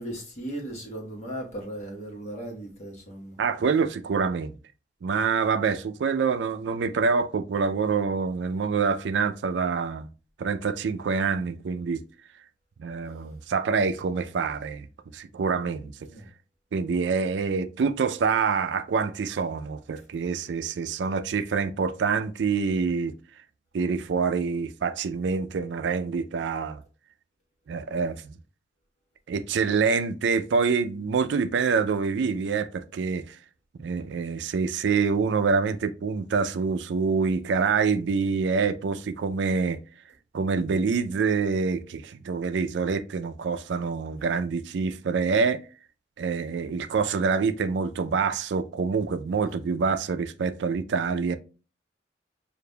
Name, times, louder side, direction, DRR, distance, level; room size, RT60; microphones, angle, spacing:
voice 1, 0.0-3.4 16.0-16.3, right 1 dB, 40° left, 1.1 m, -37 dB
voice 2, 3.4-4.5 5.0-10.1 10.4-12.0 12.8-14.9 15.1-15.9 16.7-23.1 23.7-26.8 27.7-28.4 29.3-33.4 33.8-39.8 40.3-45.6 46.2-51.4, right 5 dB, 85° right, 0.4 m, -26 dB
6.6 x 2.5 x 2.2 m
head